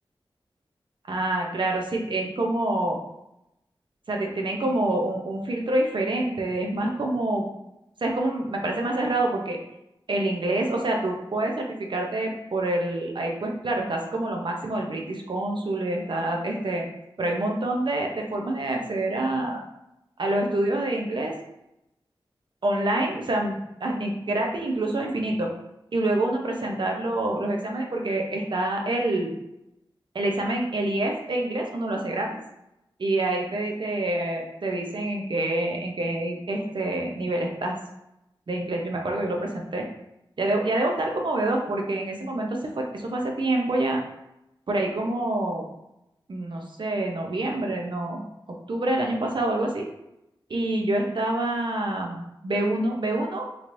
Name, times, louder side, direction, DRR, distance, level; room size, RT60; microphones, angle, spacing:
voice 1, 1.1-3.0 4.1-7.5 8.0-9.6 10.1-16.8 17.2-19.6 20.2-21.3 22.6-25.5 25.9-29.3 30.1-32.3 33.0-37.8 38.5-39.9 40.4-44.0 44.7-45.6 46.3-48.2 48.7-49.9 50.5-53.5, right 1 dB, 60° right, 1 dB, 0.6 m, -27 dB
3.0 x 3.0 x 2.5 m, 0.87 s
wide cardioid pair, 60°, 9 cm